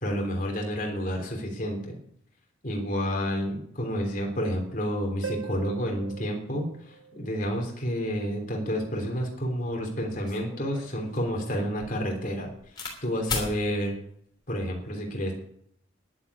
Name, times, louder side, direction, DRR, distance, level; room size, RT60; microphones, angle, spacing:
voice 1, 0.0-2.0 2.6-12.5 13.0-14.0 14.5-15.3, equal, 40° left, 1 dB, 3.2 m, -30 dB
Harp, 5.2-7.7 11.2-11.3, right 6 dB, 90° right, 1.1 m, -41 dB
sound 1, 9.6-9.7 10.1-13.0 13.3-13.5 14.4-14.8, left 4 dB, 20° left, 3.2 m, -37 dB
11.0 x 7.8 x 9.7 m, 0.67 s
head